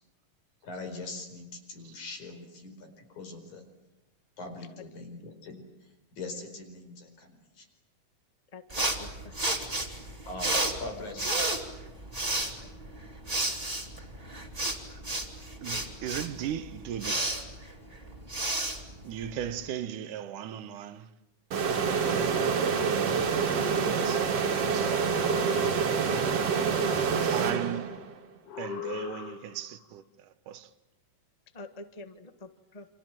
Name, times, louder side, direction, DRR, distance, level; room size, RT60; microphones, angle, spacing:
voice 1, 0.6-3.6 4.4-5.6 6.1-7.7 10.3-11.3, left 2 dB, 70° left, 6.0 m, -42 dB
voice 2, 8.5-9.3 31.5-32.8, left 2 dB, 40° left, 0.5 m, -47 dB
sound 1, 8.7-19.7, right 2 dB, 10° right, 2.8 m, -32 dB
voice 3, 15.6-17.3 19.0-21.1 21.9-22.6 23.8-25.0 25.3-26.6 27.2-27.9 28.6-30.0 30.5-30.7, right 10 dB, 80° right, 2.6 m, -38 dB
sound 2, 21.5-28.2, right 6 dB, 55° right, 2.9 m, -27 dB
sound 3, 24.7-26.1 26.5-27.7 28.5-29.8, left 8 dB, 90° left, 3.2 m, -41 dB
29.0 x 26.0 x 7.6 m
omnidirectional pair, 3.6 m